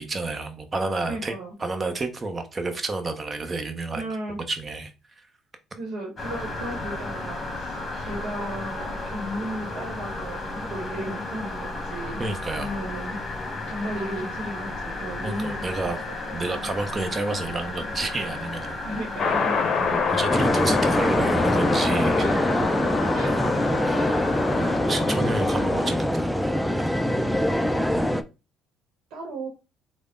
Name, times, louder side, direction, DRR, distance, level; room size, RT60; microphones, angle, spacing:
voice 1, 0.0-1.3 1.6-4.0 4.5-4.9 7.9-8.1 12.2-12.8 15.2-16.0 16.3-19.0 19.8-22.3 23.9-24.0 24.4-26.8, right 3 dB, 30° right, 0.8 m, -30 dB
voice 2, 1.1-1.5 3.9-4.4 5.7-12.2 12.6-16.4 18.8-19.6 20.3-20.5 22.2-24.5 24.8-25.0 29.1-29.5, right 1 dB, 70° right, 1.0 m, -35 dB
sound 1, 6.2-24.8, left 2 dB, 30° left, 1.2 m, -34 dB
sound 2, 19.2-25.9, left 5 dB, 50° left, 0.6 m, -27 dB
sound 3, 20.3-28.2, equal, ahead, 0.4 m, -24 dB
3.4 x 2.1 x 3.6 m
supercardioid pair, 70°, 0 cm